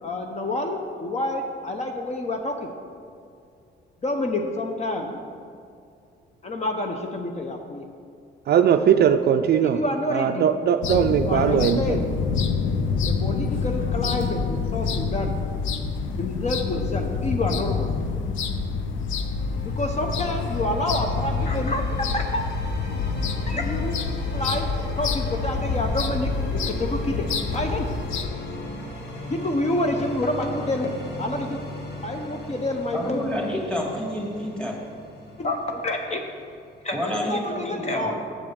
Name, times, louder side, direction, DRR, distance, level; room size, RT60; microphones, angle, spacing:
voice 1, 0.0-2.7 4.0-5.2 6.4-7.8 9.6-10.5 11.3-12.5 13.1-15.3 16.2-17.9 19.8-21.8 22.1-22.4 23.5-24.0 24.3-24.7 25.0-27.9 29.3-31.6 32.0-33.3 35.4-36.2 36.8-38.2, left 1 dB, 35° left, 3 dB, 0.8 m, -28 dB
voice 2, 8.5-9.8 10.1-12.0, right 8 dB, 55° right, 8 dB, 0.4 m, -20 dB
sound 1, 10.8-28.3, left 5 dB, 75° left, 0.7 m, -27 dB
sound 2, 19.1-36.9, equal, 55° left, 1.7 m, -37 dB
voice 3, 32.9-34.8 36.9-38.2, equal, 5° left, -1 dB, 2.1 m, -29 dB
7.8 x 4.8 x 7.2 m, 2.4 s
cardioid pair, 90°, 20 cm